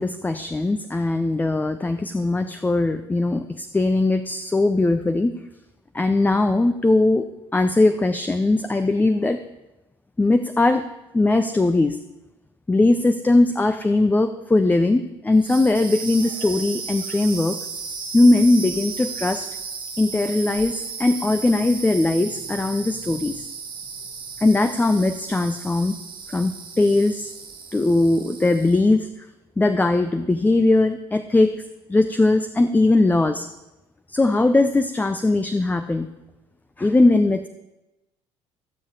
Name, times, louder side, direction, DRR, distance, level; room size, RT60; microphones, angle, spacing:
voice 1, 0.0-5.3 5.9-7.3 7.5-9.4 10.2-10.8 11.1-12.0 12.7-17.6 18.1-19.5 20.0-23.5 24.4-26.0 26.3-27.3 27.7-29.1 29.6-31.6 31.9-33.5 34.1-36.1 36.8-37.5, left 2 dB, 10° left, 8 dB, 0.6 m, -20 dB
sound 1, 15.3-28.9, right 5 dB, 35° right, 1.9 m, -35 dB
14.5 x 7.4 x 4.7 m, 0.99 s
figure-of-eight pair, 55°, 15 cm